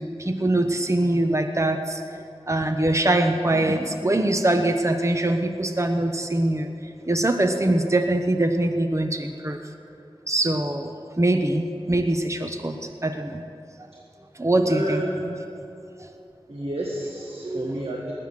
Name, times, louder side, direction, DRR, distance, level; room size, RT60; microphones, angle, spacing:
voice 1, 0.0-2.0 2.5-6.7 7.0-9.6 10.3-10.9 11.2-13.4 14.4-15.0 16.0-16.1 17.4-17.7, right 1 dB, 30° right, 6 dB, 0.9 m, -23 dB
voice 2, 14.7-15.4 16.5-18.1, right 1 dB, 75° right, -3 dB, 1.7 m, -30 dB
19.0 x 7.9 x 7.8 m, 2.6 s
wide cardioid pair, 45°, 10 cm